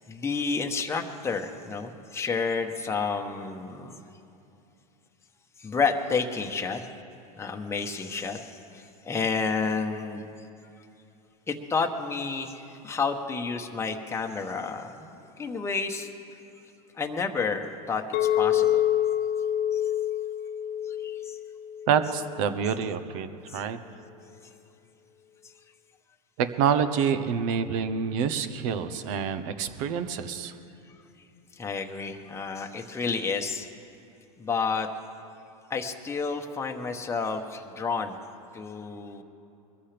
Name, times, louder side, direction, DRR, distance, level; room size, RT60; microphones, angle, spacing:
voice 1, 0.1-4.0 5.6-6.9 7.4-10.3 11.5-16.1 17.0-18.8 19.7-19.8 20.9-21.4 23.5-23.6 31.5-33.7 34.4-34.9 35.7-38.2 38.5-39.2, left 4 dB, 15° left, 3 dB, 1.0 m, -30 dB
Chink clink, 18.1-22.4, left 11 dB, 45° left, 0.8 m, -27 dB
voice 2, 21.9-23.3 23.5-23.8 26.4-30.5, right 7 dB, 60° right, 11 dB, 1.0 m, -27 dB
22.5 x 14.0 x 3.4 m, 2.8 s
hypercardioid pair, 110°, 19 cm